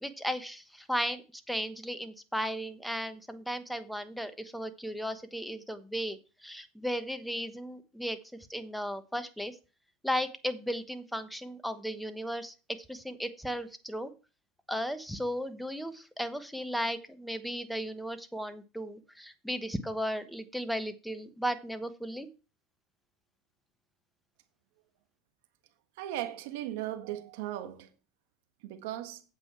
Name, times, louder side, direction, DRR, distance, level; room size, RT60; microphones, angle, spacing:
voice 1, 0.0-9.5 10.0-12.5 12.9-14.1 14.7-22.3, equal, ahead, 1.1 m, -35 dB
voice 2, 26.0-27.9 28.6-29.2, right 13 dB, 70° right, 1.6 m, -37 dB
9.0 x 7.8 x 4.4 m
supercardioid pair, 110°, 0 cm